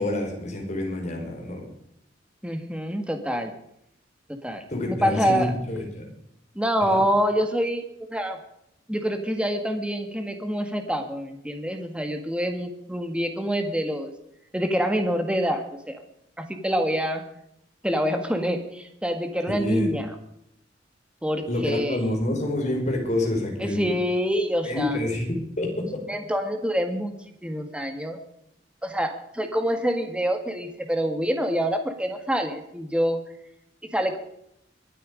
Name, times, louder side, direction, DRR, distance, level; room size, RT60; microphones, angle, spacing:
voice 1, 0.0-1.6 4.7-6.1 6.9-7.0 19.5-20.0 21.4-23.9 24.6-25.7, left 1 dB, 40° left, 1 dB, 4.9 m, -27 dB
voice 2, 2.4-3.5 4.4-5.5 6.6-7.8 8.1-8.4 8.9-14.1 14.5-16.0 16.4-17.2 17.8-20.1 21.2-22.0 23.6-25.0 26.1-27.1 27.4-28.2 28.8-33.2 33.9-34.2, equal, 5° right, 6 dB, 1.8 m, -26 dB
23.0 x 9.2 x 5.1 m, 0.76 s
head